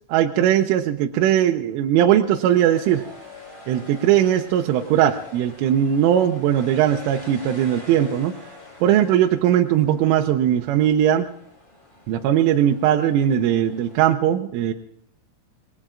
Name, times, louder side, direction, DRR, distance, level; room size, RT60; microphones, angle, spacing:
voice 1, 0.1-3.0 3.7-8.3 8.8-11.3 12.1-14.7, right 10 dB, 80° right, 4 dB, 3.2 m, -19 dB
sound 1, 2.1-14.0, left 2 dB, 20° left, 2.9 m, -45 dB
28.5 x 20.0 x 2.5 m, 0.75 s
omnidirectional pair, 5.9 m